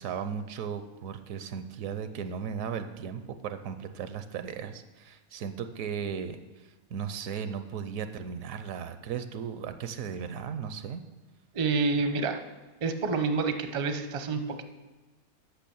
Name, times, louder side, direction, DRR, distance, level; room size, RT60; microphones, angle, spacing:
voice 1, 0.0-11.0, right 7 dB, 75° right, 10 dB, 1.0 m, -36 dB
voice 2, 11.5-12.4 12.8-14.4, right 4 dB, 40° right, 8 dB, 0.5 m, -28 dB
8.4 x 5.9 x 6.9 m, 1.2 s
omnidirectional pair, 1.5 m